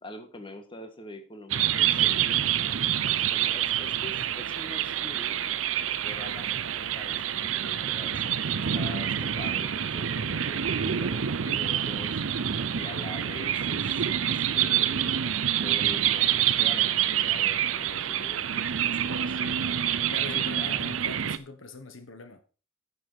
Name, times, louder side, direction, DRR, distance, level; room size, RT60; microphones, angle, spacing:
voice 1, 0.0-5.4 6.0-12.5 12.7-19.6 19.8-20.8, left 2 dB, 25° left, 1.5 m, -44 dB
sound 1, 1.5-21.4, right 10 dB, 75° right, 0.6 m, -27 dB
voice 2, 20.1-22.4, left 3 dB, 65° left, 1.2 m, -42 dB
10.0 x 6.9 x 4.6 m
head